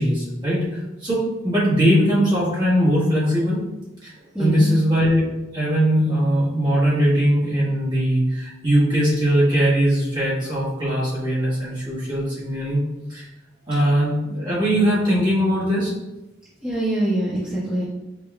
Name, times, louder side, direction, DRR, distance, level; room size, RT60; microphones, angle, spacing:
voice 1, 0.0-3.6 4.0-4.1 4.4-5.2 5.5-13.3 13.7-15.9, equal, 25° right, -9 dB, 1.3 m, -20 dB
voice 2, 4.3-4.8 16.6-17.8, right 1 dB, 5° right, -12 dB, 1.1 m, -24 dB
5.5 x 2.9 x 2.2 m, 0.98 s
head